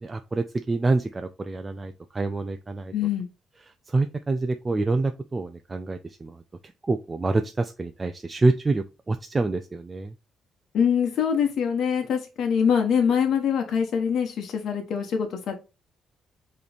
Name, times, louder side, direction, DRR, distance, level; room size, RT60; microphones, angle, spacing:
voice 1, 0.0-2.9 3.9-6.4 6.9-10.1, right 3 dB, 25° right, 7 dB, 0.4 m, -26 dB
voice 2, 2.9-3.3 10.7-15.5, left 7 dB, 65° left, 3 dB, 1.1 m, -24 dB
4.8 x 3.1 x 3.4 m, 0.29 s
cardioid pair, 90°, 0 cm